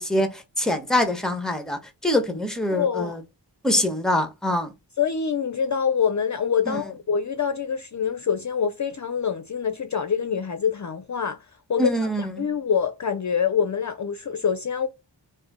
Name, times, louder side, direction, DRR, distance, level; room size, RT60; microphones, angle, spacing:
voice 1, 0.0-3.2 3.6-4.7 6.7-6.8 11.8-12.5, left 1 dB, ahead, 1.0 m, -24 dB
voice 2, 2.7-3.2 5.0-14.9, left 7 dB, 40° left, 0.5 m, -25 dB
3.5 x 2.6 x 3.5 m
cardioid pair, 55°, 44 cm